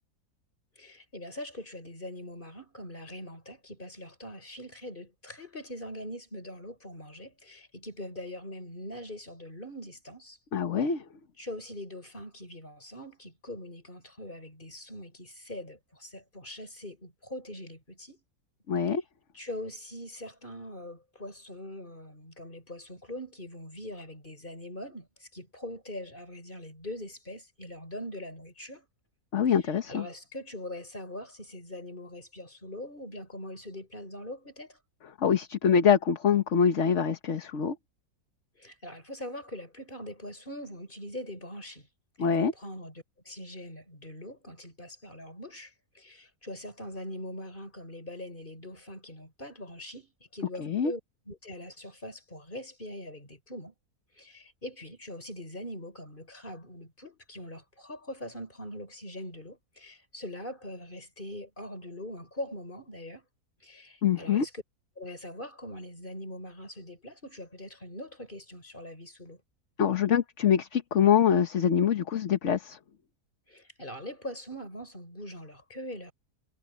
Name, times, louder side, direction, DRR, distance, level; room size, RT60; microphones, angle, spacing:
voice 1, 0.8-10.4 11.4-18.2 19.3-28.9 29.6-34.8 38.6-41.9 42.2-51.0 51.3-53.7 54.2-63.3 63.6-64.6 65.0-69.4 73.5-76.1, left 1 dB, 30° left, 5.8 m, -42 dB
voice 2, 10.5-11.0 18.7-19.0 29.3-30.1 35.2-37.8 42.2-42.5 50.6-50.9 64.0-64.5 69.8-72.8, left 7 dB, 50° left, 1.4 m, -24 dB
omnidirectional pair, 1.7 m